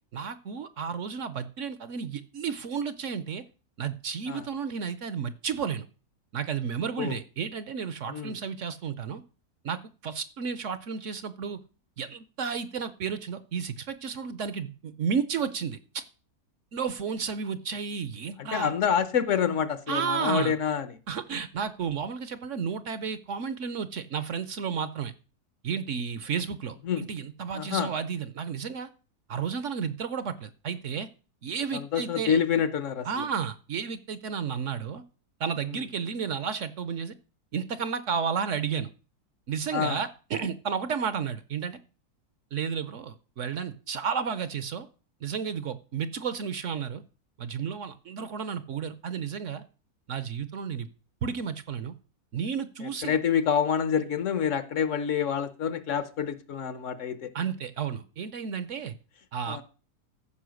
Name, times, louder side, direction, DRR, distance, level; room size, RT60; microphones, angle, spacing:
voice 1, 0.1-3.4 3.8-5.9 6.3-9.2 9.6-11.6 12.0-16.0 16.7-18.7 19.9-20.5 21.1-25.1 25.6-28.9 29.3-31.1 31.4-32.4 33.0-35.0 35.4-37.1 37.5-38.9 39.5-41.8 42.5-44.9 45.2-47.0 47.4-49.6 50.1-50.9 51.2-52.0 52.3-53.2 57.3-58.9 59.3-59.6, right 6 dB, 60° right, 0.9 m, -32 dB
voice 2, 18.4-20.9 26.9-27.0 27.5-27.9 31.7-33.3 39.7-40.0 53.0-57.3 59.5-59.6, left 7 dB, 60° left, 1.1 m, -27 dB
14.0 x 5.4 x 6.3 m
omnidirectional pair, 1.7 m